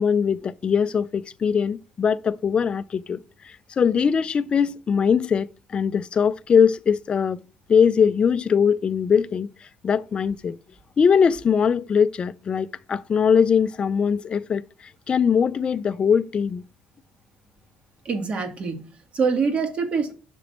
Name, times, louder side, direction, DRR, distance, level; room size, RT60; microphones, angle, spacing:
voice 1, 0.0-7.4 7.7-10.6 11.0-16.6, left 7 dB, 30° left, 0.3 m, -21 dB
voice 2, 18.0-20.1, right 5 dB, 40° right, 1.6 m, -25 dB
5.9 x 3.3 x 5.1 m
cardioid pair, 105°, 3 cm